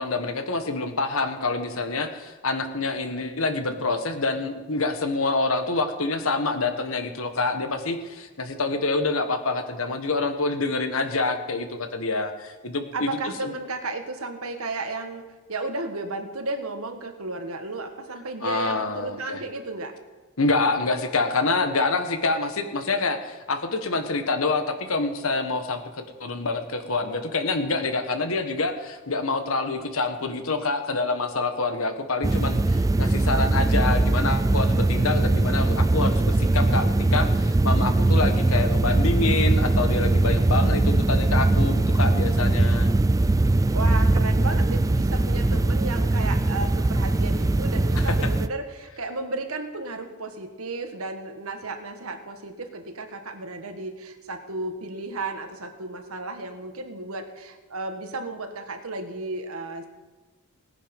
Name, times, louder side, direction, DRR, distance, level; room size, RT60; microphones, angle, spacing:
voice 1, 0.0-13.5 18.4-19.4 20.4-42.9 47.9-48.1, left 3 dB, 65° left, 7 dB, 1.4 m, -27 dB
voice 2, 12.9-20.0 43.7-59.9, right 2 dB, 75° right, 6 dB, 1.6 m, -34 dB
sound 1, 32.2-48.5, right 2 dB, 15° right, 0.3 m, -21 dB
18.5 x 10.0 x 5.4 m, 1.3 s
head